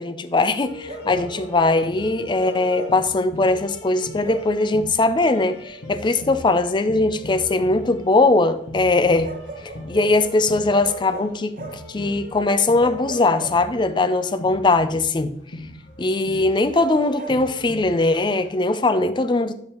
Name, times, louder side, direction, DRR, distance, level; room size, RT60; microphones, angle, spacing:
voice 1, 0.0-9.3 9.9-11.6 11.9-15.4 16.0-19.5, left 2 dB, 25° left, 0.4 m, -20 dB
sound 1, 0.6-18.5, left 2 dB, 85° left, 1.6 m, -39 dB
Bark, 0.8-1.6 2.4-3.1 4.2-4.6 6.2-6.4 9.2-10.2 10.8-11.9 12.8-14.0 16.7-17.4, right 3 dB, 50° right, 1.1 m, -38 dB
10.5 x 5.2 x 3.0 m
head